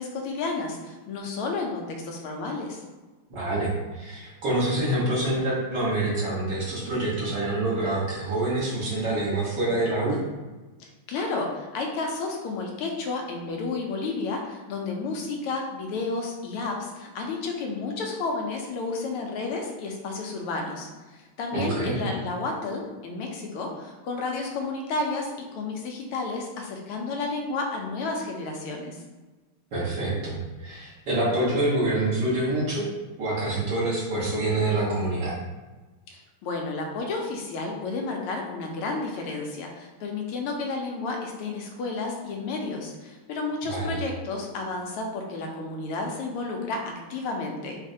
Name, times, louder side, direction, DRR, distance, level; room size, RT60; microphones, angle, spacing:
voice 1, 0.0-2.8 11.1-29.0 36.1-47.8, left 3 dB, 90° left, 1 dB, 1.5 m, -31 dB
voice 2, 3.3-10.2 21.5-22.0 29.7-32.9 33.2-35.3 43.7-44.0, right 2 dB, 55° right, -7 dB, 1.7 m, -26 dB
5.2 x 2.4 x 2.7 m, 1.2 s
omnidirectional pair, 2.4 m